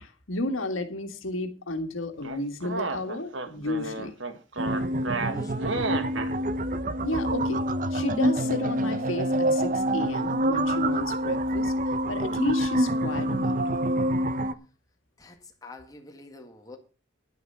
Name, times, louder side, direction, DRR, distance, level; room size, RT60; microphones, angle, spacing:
voice 1, 0.0-4.1 7.0-7.6 7.9-13.6, left 2 dB, 90° left, 1.8 m, -32 dB
sound 1, 2.2-6.3, right 3 dB, 75° right, 1.5 m, -32 dB
sound 2, 4.6-14.5, right 1 dB, 40° right, 0.7 m, -26 dB
voice 2, 5.2-6.0 15.2-16.8, left 2 dB, 20° left, 1.8 m, -45 dB
11.0 x 9.7 x 5.6 m
head